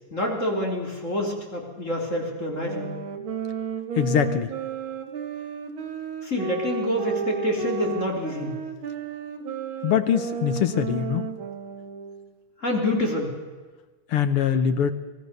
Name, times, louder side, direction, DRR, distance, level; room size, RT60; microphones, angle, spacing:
voice 1, 0.1-3.0 6.2-8.5 12.6-13.3, left 1 dB, 25° left, 0 dB, 3.4 m, -27 dB
sound 1, 2.6-12.3, right 6 dB, 50° right, 2.0 m, -33 dB
voice 2, 4.0-4.5 9.8-11.3 14.1-14.9, left 8 dB, 60° left, 10 dB, 1.6 m, -23 dB
26.0 x 18.5 x 6.7 m, 1.3 s
omnidirectional pair, 3.5 m